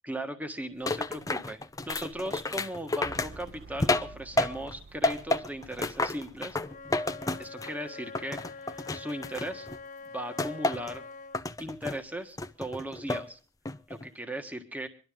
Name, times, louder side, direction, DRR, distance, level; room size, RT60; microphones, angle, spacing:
voice 1, 0.0-6.6 7.4-9.7 10.1-11.0 11.6-13.4 13.9-14.9, right 1 dB, 10° right, 6 dB, 1.5 m, -38 dB
sound 1, 0.9-4.8 5.0-7.8 8.1-9.8 10.4-11.0 11.3-12.0 12.4-13.3 13.7-14.1, left 2 dB, 20° left, 0.7 m, -31 dB
sound 2, 3.0-7.6, right 3 dB, 50° right, 1.0 m, -50 dB
Wind instrument woodwind instrument, 6.6-11.4, left 4 dB, 40° left, 1.0 m, -45 dB
24.0 x 12.5 x 3.7 m, 0.39 s
head